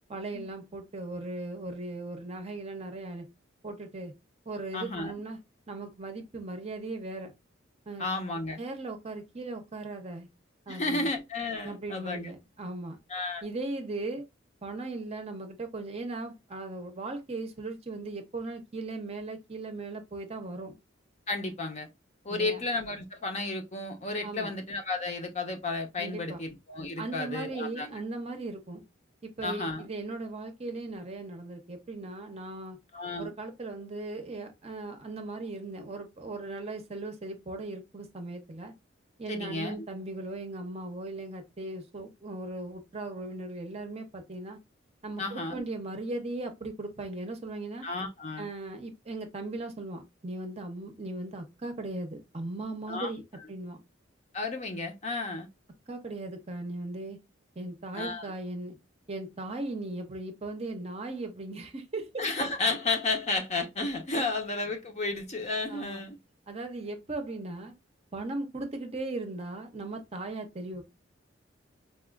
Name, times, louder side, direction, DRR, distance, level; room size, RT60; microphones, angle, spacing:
voice 1, 0.1-3.2 3.6-4.1 4.5-5.4 5.7-7.3 7.9-8.0 8.6-10.3 10.7-11.1 11.6-13.0 13.4-14.2 14.6-20.7 22.3-22.6 24.2-24.5 26.0-26.4 27.0-28.8 29.2-32.8 33.2-38.7 39.2-44.6 45.0-47.9 48.4-53.2 53.5-53.8 55.9-57.2 57.6-58.7 59.1-62.2 64.1-64.3 65.7-66.0 66.5-67.7 68.1-70.8, right 2 dB, 30° right, 0.7 m, -38 dB
voice 2, 4.7-5.1 8.0-8.6 10.7-12.3 13.1-13.5 21.3-21.9 22.2-28.0 29.4-29.9 32.9-33.3 39.3-39.9 45.2-45.6 47.8-48.5 52.9-53.1 54.3-55.5 57.9-58.3 62.2-66.2, left 3 dB, 35° left, 0.7 m, -32 dB
4.2 x 2.4 x 2.3 m
head